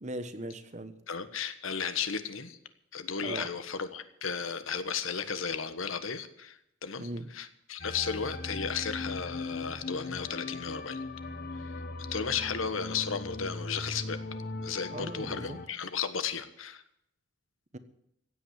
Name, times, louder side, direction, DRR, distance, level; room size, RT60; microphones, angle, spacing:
voice 1, 0.0-0.9 3.2-3.5 7.0-7.3 14.9-15.6 17.7-17.8, right 1 dB, 35° right, 11 dB, 1.2 m, -38 dB
voice 2, 1.1-2.6 2.9-11.0 12.1-14.2 14.6-16.8, left 6 dB, 90° left, 11 dB, 1.4 m, -34 dB
sound 1, 7.8-15.7, left 2 dB, 50° left, 1.2 m, -39 dB
16.0 x 8.5 x 9.5 m, 0.79 s
head